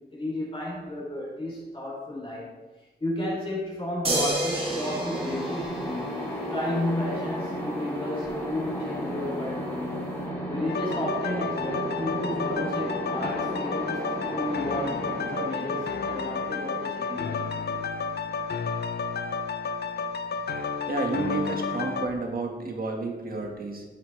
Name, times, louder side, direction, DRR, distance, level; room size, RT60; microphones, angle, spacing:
voice 1, 0.1-2.5 3.0-14.0 14.3-17.5, left 1 dB, 30° left, -5 dB, 3.4 m, -33 dB
sound 1, 4.0-6.5 8.2-8.3, right 1 dB, 35° right, 2.5 m, -30 dB
sound 2, 4.5-18.1, equal, 10° left, 2.5 m, -34 dB
sound 3, 10.7-22.1, left 5 dB, 70° left, 0.7 m, -31 dB
voice 2, 20.9-23.8, right 3 dB, 55° right, 2 dB, 1.7 m, -31 dB
12.0 x 7.6 x 3.3 m, 1.2 s
wide cardioid pair, 115°, 18 cm